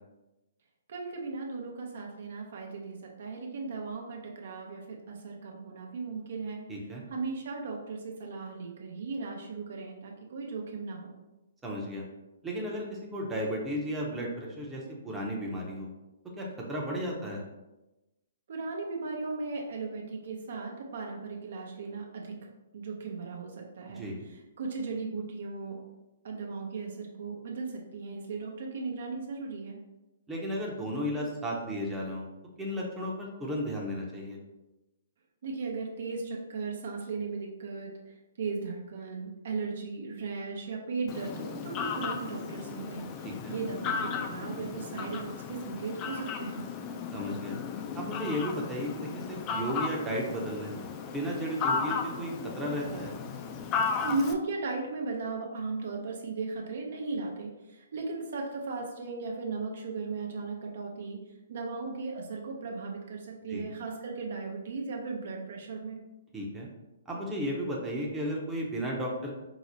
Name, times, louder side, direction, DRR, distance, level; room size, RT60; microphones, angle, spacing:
voice 1, 0.9-6.6 7.1-11.1 18.5-22.4 22.7-25.8 26.2-29.8 35.4-46.6 54.0-61.2 61.5-66.0, right 4 dB, 60° right, 0 dB, 0.6 m, -37 dB
voice 2, 6.7-7.0 11.6-12.0 12.4-15.9 16.4-17.4 24.0-24.2 30.3-32.3 32.6-34.4 43.2-43.6 47.1-47.6 47.9-52.3 52.6-53.1 63.5-63.7 66.3-66.7 67.1-69.3, equal, 10° right, -3 dB, 0.6 m, -34 dB
Fowl, 41.1-54.3, left 6 dB, 30° left, 0.3 m, -35 dB
4.7 x 2.0 x 2.7 m, 1.0 s
hypercardioid pair, 130°, 0 cm